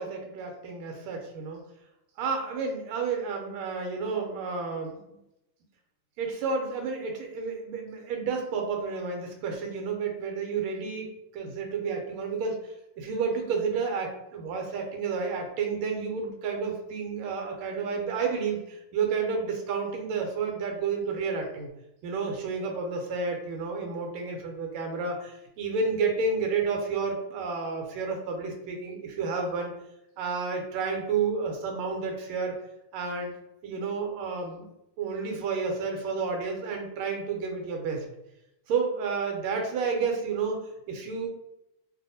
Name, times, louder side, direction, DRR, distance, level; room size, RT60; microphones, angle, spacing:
voice 1, 0.0-1.6 2.2-5.2 6.2-12.6 13.0-21.7 22.0-29.7 30.2-32.5 32.9-33.3 33.6-34.7 35.0-38.0 38.7-41.3, right 5 dB, 80° right, 3 dB, 1.5 m, -31 dB
3.4 x 2.5 x 2.6 m, 0.86 s
omnidirectional pair, 2.4 m